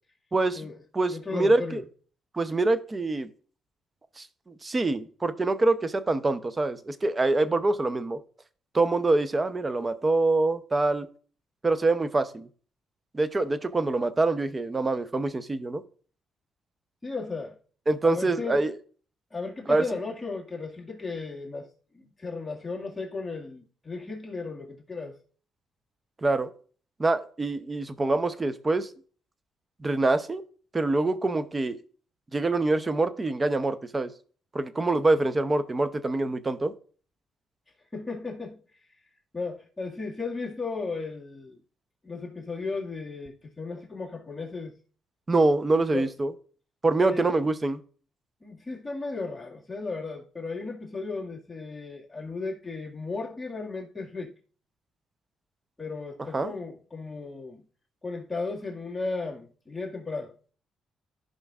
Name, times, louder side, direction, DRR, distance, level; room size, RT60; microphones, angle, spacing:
voice 1, 0.3-1.8 2.3-3.3 4.2-8.2 8.7-11.1 11.6-12.5 13.1-15.8 17.9-18.8 19.7-19.8 26.2-26.5 27.0-28.9 29.8-30.4 30.7-31.8 32.3-34.1 34.5-36.7 45.3-46.3 46.8-47.8 56.3-56.5, right 2 dB, 25° right, 0.7 m, -25 dB
voice 2, 1.1-1.8 17.0-17.6 18.0-18.6 19.3-21.7 21.9-25.2 37.9-38.6 39.3-41.6 42.0-44.8 45.9-46.1 47.0-47.4 48.4-54.3 55.8-57.6 58.0-60.3, left 3 dB, 20° left, 2.0 m, -35 dB
14.5 x 5.3 x 2.5 m
cardioid pair, 90°, 0 cm